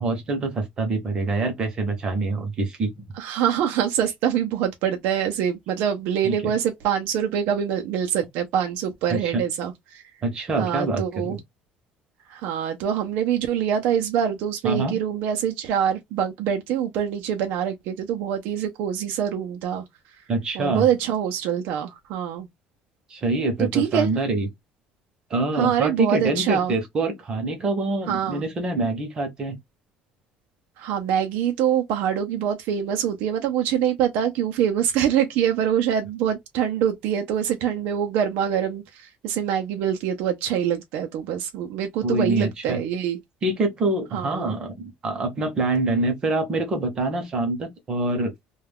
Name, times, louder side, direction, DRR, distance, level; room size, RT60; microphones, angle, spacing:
voice 1, 0.0-2.9 6.2-6.5 9.1-9.4 10.2-11.4 14.6-14.9 20.3-20.9 23.1-24.5 25.3-29.6 42.0-42.8 43.4-48.3, right 2 dB, 25° right, 0.8 m, -25 dB
voice 2, 3.2-10.0 10.6-11.4 12.3-19.8 20.5-22.5 23.6-24.1 25.5-26.7 28.1-28.4 30.8-43.2 44.1-44.6, right 9 dB, 65° right, 0.5 m, -25 dB
2.3 x 2.2 x 3.4 m
cardioid pair, 180°, 3 cm